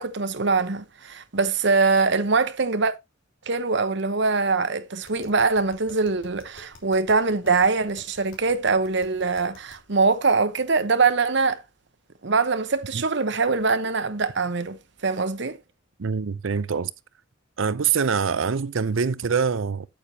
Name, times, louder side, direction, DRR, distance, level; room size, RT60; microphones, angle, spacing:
voice 1, 0.0-2.9 3.5-11.6 12.2-15.6, right 4 dB, 60° right, 1.0 m, -23 dB
Tap, 5.0-9.9, left 2 dB, 75° left, 3.1 m, -51 dB
voice 2, 16.0-16.9 17.6-19.9, right 6 dB, 85° right, 0.6 m, -24 dB
8.9 x 8.6 x 2.8 m
head